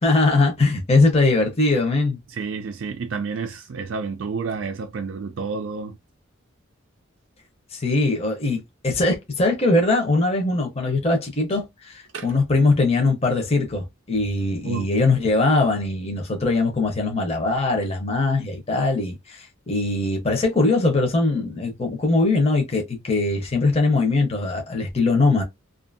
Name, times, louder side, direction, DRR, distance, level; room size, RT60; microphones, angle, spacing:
voice 1, 0.0-2.2 7.7-25.4, left 3 dB, 30° left, 0.8 m, -21 dB
voice 2, 2.3-5.9 12.1-12.3 14.6-14.9, right 5 dB, 65° right, 0.4 m, -30 dB
2.6 x 2.5 x 2.5 m
head